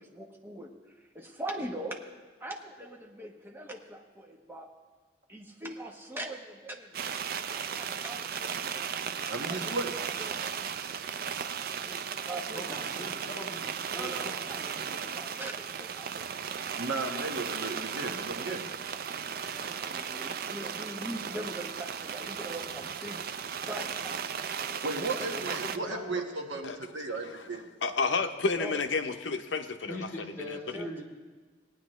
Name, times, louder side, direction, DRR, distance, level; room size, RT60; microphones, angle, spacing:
voice 1, 0.0-2.0 2.4-4.7 5.3-8.9 9.5-10.4 11.8-13.1 13.9-16.3 18.4-18.8 19.1-23.2 23.6-24.2 24.7-25.7 28.6-28.8 30.7-31.0, right 1 dB, 10° right, 1 dB, 1.0 m, -42 dB
sound 1, 6.9-25.8, right 7 dB, 50° right, 0.4 m, -36 dB
voice 2, 9.3-9.9 16.8-18.6 24.8-27.6, right 3 dB, 75° right, 2 dB, 1.3 m, -35 dB
voice 3, 12.5-15.0 25.2-26.2 29.9-31.0, equal, 15° left, -5 dB, 2.8 m, -42 dB
voice 4, 27.2-30.1 30.5-30.6, left 4 dB, 75° left, 7 dB, 0.7 m, -31 dB
18.5 x 9.3 x 3.1 m, 1.4 s
head